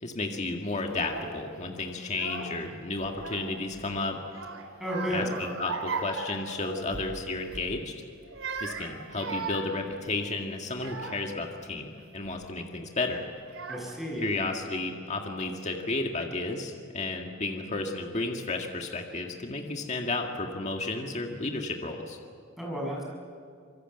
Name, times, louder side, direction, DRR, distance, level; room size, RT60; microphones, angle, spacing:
voice 1, 0.0-4.2 5.1-7.9 8.6-13.3 14.2-22.2, left 2 dB, 35° left, 2 dB, 1.9 m, -32 dB
Child speech kid speaking / Crying sobbing, 0.8-1.4 2.0-2.7 3.0-3.8 4.3-7.1 7.5-7.7 8.2-11.4 12.0-12.4 13.1-13.2 13.5-14.2, right 4 dB, 90° right, 3.1 m, -38 dB
voice 2, 4.8-5.3 13.7-14.4 22.6-23.0, equal, ahead, -2 dB, 6.7 m, -32 dB
25.5 x 23.5 x 8.0 m, 2.2 s
head